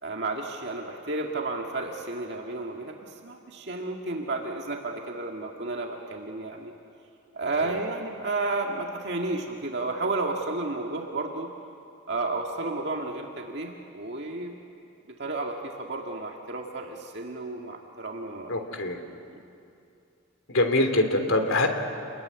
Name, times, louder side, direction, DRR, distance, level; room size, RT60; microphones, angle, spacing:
voice 1, 0.0-6.7 7.3-11.5 12.1-14.6 15.2-18.5, right 2 dB, 55° right, 1 dB, 1.9 m, -32 dB
voice 2, 18.5-19.0 20.5-21.7, left 2 dB, 80° left, 5 dB, 3.1 m, -24 dB
28.5 x 21.5 x 9.7 m, 2.5 s
head